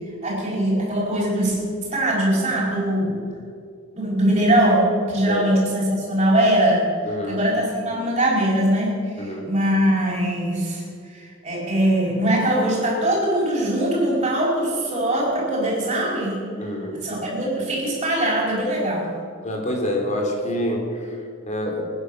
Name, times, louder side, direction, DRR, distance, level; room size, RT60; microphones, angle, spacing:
voice 1, 0.2-3.2 3.9-6.9 7.3-16.4 17.0-19.1, right 1 dB, 30° right, -8 dB, 4.8 m, -21 dB
voice 2, 7.0-7.4 9.2-9.5 16.6-17.3 19.4-21.9, left 1 dB, 35° left, 1 dB, 3.1 m, -27 dB
19.5 x 9.7 x 6.6 m, 2.3 s
head